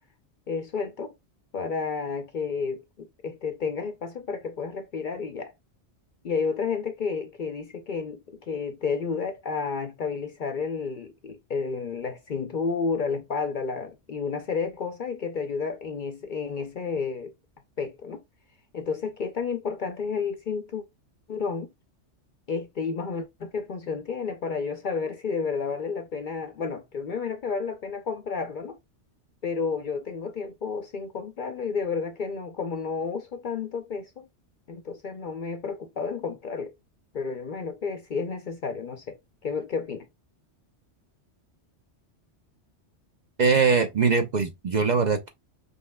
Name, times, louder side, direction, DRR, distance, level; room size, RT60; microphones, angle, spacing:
voice 1, 0.5-1.1 1.5-5.5 6.2-17.3 17.8-18.2 18.7-20.8 21.3-21.7 22.5-28.8 29.4-34.3 34.7-36.7 37.1-39.1 39.4-40.0, left 5 dB, 55° left, 0.6 m, -31 dB
voice 2, 43.4-45.3, right 5 dB, 50° right, 0.6 m, -22 dB
5.5 x 3.2 x 2.2 m
omnidirectional pair, 1.2 m